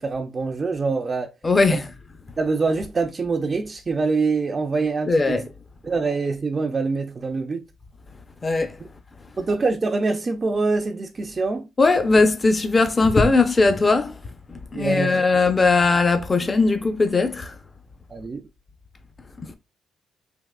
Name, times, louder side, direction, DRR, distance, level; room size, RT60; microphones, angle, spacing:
voice 1, 0.0-1.3 2.4-5.4 5.8-7.6 9.4-11.7 14.7-15.2 18.1-18.4, right 4 dB, 35° right, 0.4 m, -24 dB
voice 2, 1.4-1.9 5.1-5.5 8.4-8.8 11.8-14.2 14.5-17.6 19.4-19.6, left 3 dB, 25° left, 0.5 m, -19 dB
3.5 x 2.8 x 2.2 m
cardioid pair, 90°, 0 cm